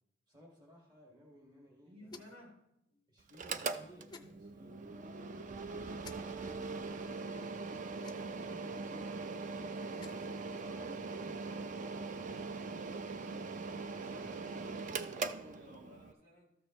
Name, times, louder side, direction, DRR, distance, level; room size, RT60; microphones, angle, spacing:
voice 1, 0.3-2.3 3.1-4.8 5.1-5.3 8.4-12.5 13.9-14.4, equal, 20° right, -3 dB, 1.8 m, -59 dB
voice 2, 1.8-3.0 7.2-7.9 13.9-16.5, equal, 80° right, -2 dB, 3.3 m, -57 dB
sound 1, 2.1-2.5 4.1-4.3 6.0-6.2 8.0-8.5 9.8-10.3, left 4 dB, 20° left, 0.4 m, -53 dB
Mechanical fan, 3.3-16.1, right 4 dB, 40° right, 0.4 m, -41 dB
13.5 x 6.6 x 3.0 m, 0.81 s
head